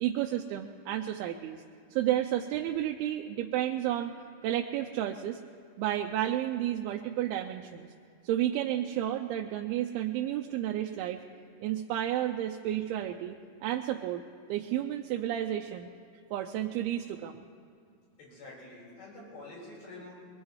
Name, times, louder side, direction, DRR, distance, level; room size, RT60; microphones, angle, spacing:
voice 1, 0.0-1.6 1.9-4.1 4.4-5.4 5.8-7.9 8.2-11.2 11.6-14.2 14.5-15.9 16.3-17.5, right 12 dB, 80° right, 3 dB, 2.4 m, -31 dB
voice 2, 18.2-20.1, left 2 dB, 85° left, -6 dB, 6.8 m, -47 dB
22.5 x 19.5 x 3.2 m, 2.3 s
omnidirectional pair, 4.8 m